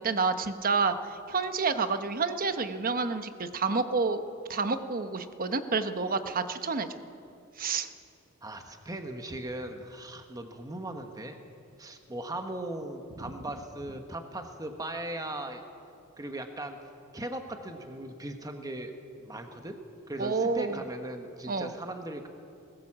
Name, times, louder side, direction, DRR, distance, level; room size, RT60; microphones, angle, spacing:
voice 1, 0.0-4.2 4.5-6.9 7.6-7.9 20.2-20.8 21.5-21.7, right 4 dB, 45° right, 9 dB, 1.0 m, -29 dB
voice 2, 8.4-11.4 11.8-15.6 16.2-16.8 17.1-19.8 20.1-22.3, right 1 dB, 15° right, 5 dB, 1.2 m, -38 dB
20.5 x 19.0 x 7.4 m, 2.6 s
head